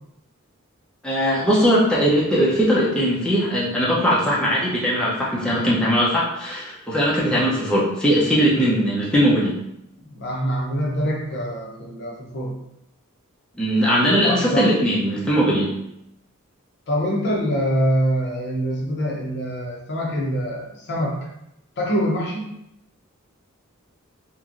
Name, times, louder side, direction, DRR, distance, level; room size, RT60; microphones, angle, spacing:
voice 1, 1.0-9.6 13.6-15.7, equal, 5° left, -7 dB, 0.6 m, -20 dB
voice 2, 10.0-12.6 14.3-14.7 16.9-21.1 21.8-22.5, equal, 55° left, -2 dB, 0.6 m, -24 dB
3.0 x 2.5 x 2.5 m, 0.82 s
head